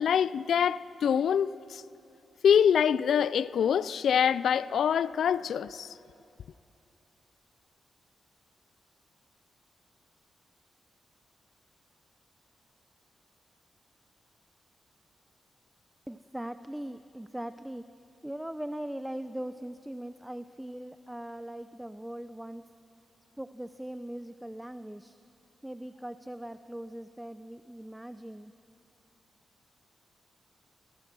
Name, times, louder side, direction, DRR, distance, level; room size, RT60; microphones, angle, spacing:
voice 1, 0.0-1.8 2.4-5.9, left 8 dB, 80° left, 0.4 m, -25 dB
voice 2, 16.1-17.8 18.2-22.7 23.4-25.2 25.6-28.5, right 1 dB, 10° right, 0.6 m, -40 dB
28.5 x 17.5 x 6.1 m
cardioid pair, 65°, 0 cm